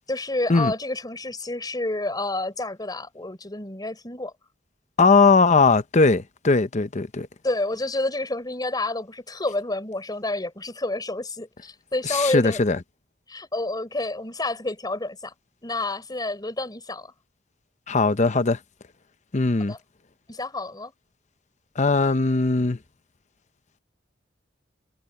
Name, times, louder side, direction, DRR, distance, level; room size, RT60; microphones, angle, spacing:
voice 1, 0.1-4.3 7.4-12.6 13.3-15.3 15.6-17.1 19.7-19.8 20.3-20.9, left 2 dB, 20° left, 4.1 m, -29 dB
voice 2, 5.0-7.3 12.1-12.8 17.9-18.6 19.3-19.7 21.8-22.8, left 3 dB, 40° left, 0.8 m, -19 dB
head